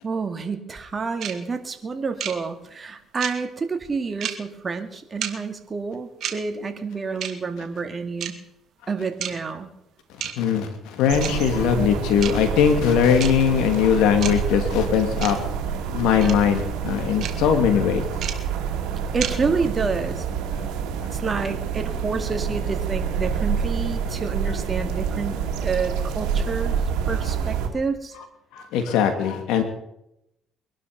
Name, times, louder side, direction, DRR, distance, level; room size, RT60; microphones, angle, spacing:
voice 1, 0.0-8.4 8.9-9.7 19.1-20.7 21.1-26.8 27.1-28.1, right 4 dB, 30° right, 6 dB, 2.3 m, -29 dB
sound 1, 1.2-1.3 2.2-2.3 3.2-3.3 4.2-4.3 5.2-5.3 6.2-6.3 7.2-7.3 8.2-8.3 9.2-9.3 10.2-10.3 11.2-11.3 12.2-12.3 13.2-13.3 14.2-14.3 15.2-15.3 16.2-16.3 17.2-17.3 18.2-18.3 19.2-19.3, right 9 dB, 65° right, 2.0 m, -29 dB
voice 2, 10.4-15.4 15.9-18.0 28.5-29.6, left 8 dB, 85° left, 6 dB, 2.7 m, -20 dB
sound 2, 11.1-27.7, right 7 dB, 90° right, 2.3 m, -27 dB
22.5 x 11.5 x 5.3 m, 0.84 s
cardioid pair, 95°, 0 cm